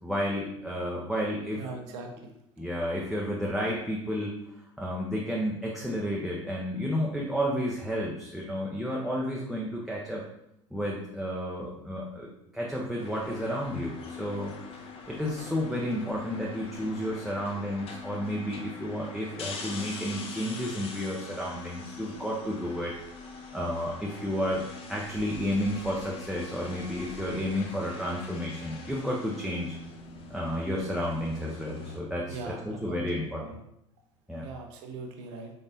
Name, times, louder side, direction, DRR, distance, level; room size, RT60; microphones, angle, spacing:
voice 1, 0.0-1.6 2.6-10.2 10.7-14.5 15.1-23.0 23.5-24.6 24.9-29.8 30.3-33.4 34.3-34.5, equal, ahead, -4 dB, 0.5 m, -31 dB
voice 2, 1.5-2.3 32.3-33.6 34.4-35.5, right 3 dB, 55° right, 3 dB, 0.8 m, -41 dB
sound 1, 13.0-32.0, left 4 dB, 35° left, 0.7 m, -43 dB
4.0 x 3.5 x 2.6 m, 0.82 s
figure-of-eight pair, 70°, 17 cm